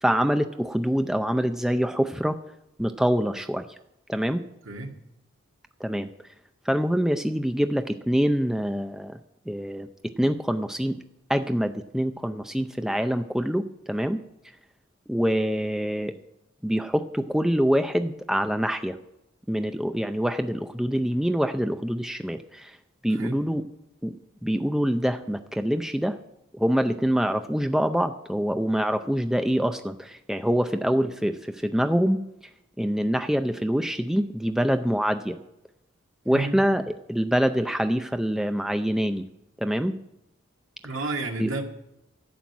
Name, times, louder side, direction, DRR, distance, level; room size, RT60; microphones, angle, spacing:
voice 1, 0.0-2.4 2.8-3.7 4.1-4.4 5.8-6.1 6.7-9.2 9.5-11.0 11.3-14.2 15.1-16.1 16.6-19.0 19.5-22.8 23.0-23.6 24.0-24.1 24.4-26.2 26.5-32.2 32.8-35.4 36.3-36.8 37.1-39.2 39.6-39.9 41.4-41.5, equal, ahead, 7 dB, 0.4 m, -25 dB
voice 2, 23.1-23.4 36.3-36.6 40.8-41.6, right 3 dB, 75° right, 3 dB, 1.9 m, -31 dB
11.5 x 7.6 x 9.4 m, 0.86 s
head